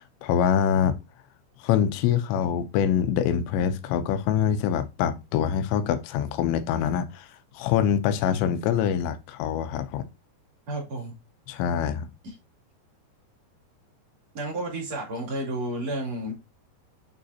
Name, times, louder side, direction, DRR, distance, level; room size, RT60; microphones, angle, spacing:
voice 1, 0.2-1.0 1.6-7.3 7.5-10.0 11.5-12.1, left 8 dB, 85° left, 3.0 m, -24 dB
voice 2, 10.7-11.1 14.3-16.3, right 1 dB, 40° right, 3.4 m, -31 dB
8.9 x 4.1 x 2.8 m
omnidirectional pair, 5.0 m